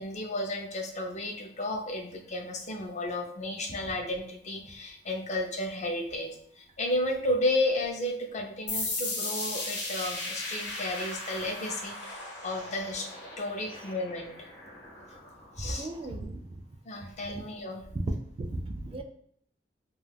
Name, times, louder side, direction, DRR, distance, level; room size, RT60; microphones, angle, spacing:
voice 1, 0.0-13.1 13.4-14.5 15.6-15.9 16.2-16.3 16.9-17.8, left 1 dB, 40° left, 3 dB, 0.4 m, -33 dB
sound 1, 8.7-16.1, left 2 dB, 70° left, 0.9 m, -37 dB
voice 2, 15.6-16.4 17.3-17.4 17.9-18.0 18.4-19.0, right 2 dB, 30° right, 6 dB, 0.3 m, -35 dB
2.2 x 2.2 x 3.3 m, 0.66 s
head